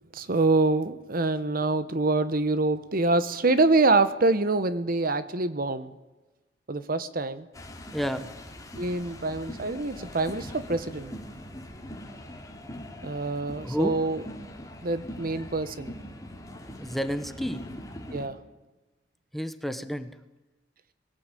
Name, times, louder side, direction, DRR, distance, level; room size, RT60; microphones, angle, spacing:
voice 1, 0.1-5.9 6.7-7.5 8.8-11.1 13.0-14.3 14.8-15.9 18.1-18.4, right 3 dB, 50° right, 13 dB, 1.1 m, -25 dB
sound 1, 7.5-18.3, left 1 dB, 20° left, 2.9 m, -42 dB
voice 2, 7.9-8.3 13.6-14.0 16.8-17.6 19.3-20.2, equal, ahead, 10 dB, 1.1 m, -30 dB
21.0 x 17.0 x 9.1 m, 1.1 s
head